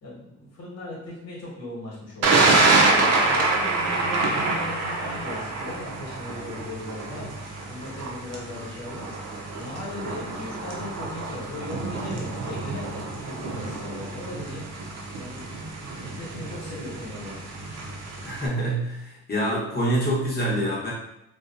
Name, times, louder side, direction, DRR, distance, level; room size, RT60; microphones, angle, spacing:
voice 1, 0.0-2.8 3.2-9.3 9.6-14.8 15.1-17.4, left 2 dB, 60° left, -5 dB, 1.3 m, -38 dB
Thunder, 2.2-18.5, right 3 dB, 60° right, 0.6 m, -26 dB
voice 2, 18.2-20.9, right 1 dB, 30° left, -5 dB, 1.0 m, -26 dB
2.8 x 2.3 x 2.4 m, 0.83 s
cardioid pair, 90°, 30 cm